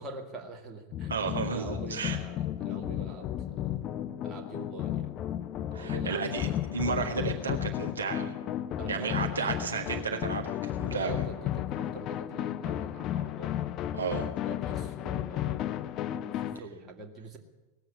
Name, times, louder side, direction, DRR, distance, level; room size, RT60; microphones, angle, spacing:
voice 1, 0.0-1.1 1.5-3.9 4.2-5.2 5.7-6.2 6.9-7.1 8.8-9.4 10.8-13.6 14.4-15.9 16.2-17.4, right 3 dB, 25° right, 3 dB, 1.9 m, -44 dB
sound 1, 0.9-16.6, left 11 dB, 35° left, 0.5 m, -33 dB
voice 2, 1.1-2.2 5.7-8.3 8.9-11.2 13.9-14.3, right 5 dB, 70° right, 1 dB, 1.3 m, -33 dB
18.5 x 7.6 x 9.6 m, 1.2 s
figure-of-eight pair, 90°, 0 cm